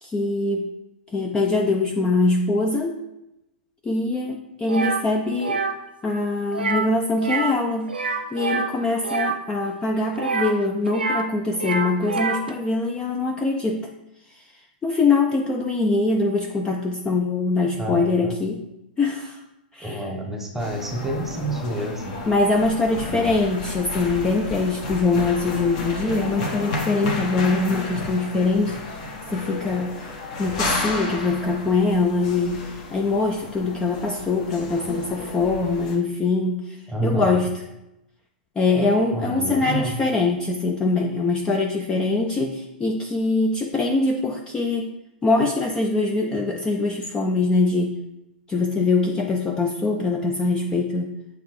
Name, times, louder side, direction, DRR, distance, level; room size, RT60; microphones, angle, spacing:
voice 1, 0.0-0.6 1.1-3.0 3.8-5.6 6.0-8.0 8.3-13.9 14.3-14.4 14.8-18.6 19.0-19.4 19.7-20.1 22.3-30.0 30.4-36.8 37.0-37.5 38.6-44.9 45.2-48.0 48.5-51.2, left 3 dB, 15° left, 2 dB, 0.5 m, -23 dB
sound 1, 4.7-5.0 5.4-5.7 6.5-6.9 7.2-7.6 7.9-9.4 10.1-11.3 11.5-12.5, right 4 dB, 80° right, 0.5 m, -26 dB
voice 2, 17.7-18.3 19.8-22.2 23.1-23.3 36.9-37.4 39.1-40.0, right 1 dB, 5° right, 2 dB, 1.0 m, -28 dB
sound 2, 20.6-36.0, left 2 dB, 45° left, 1.3 m, -32 dB
8.4 x 3.5 x 3.1 m, 0.90 s
figure-of-eight pair, 105°, 5 cm